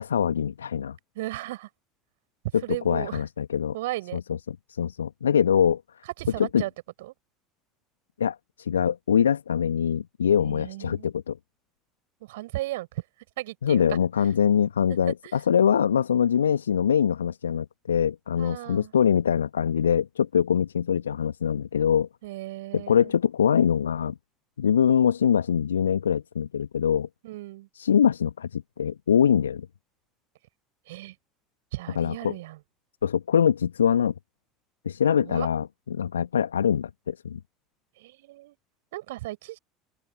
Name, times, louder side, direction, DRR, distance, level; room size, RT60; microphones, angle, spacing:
voice 1, 0.0-1.0 2.9-3.7 4.1-4.2 4.5-5.8 6.5-6.6 8.2-11.4 13.6-22.1 22.7-24.1 24.6-27.1 27.8-29.7 32.0-32.3 33.0-34.1 34.9-37.4, left 8 dB, 75° left, 2.0 m, -23 dB
voice 2, 1.1-1.7 2.6-3.2 3.7-4.2 6.2-6.7 7.0-7.1 10.4-11.1 12.2-13.0 13.4-14.0 15.2-15.4 18.4-18.9 22.2-23.1 27.2-27.7 30.9-31.2 31.7-32.6 35.2-35.5 38.0-38.6 38.9-39.6, right 18 dB, 65° right, 6.2 m, -35 dB
open air
figure-of-eight pair, 70°, 0 cm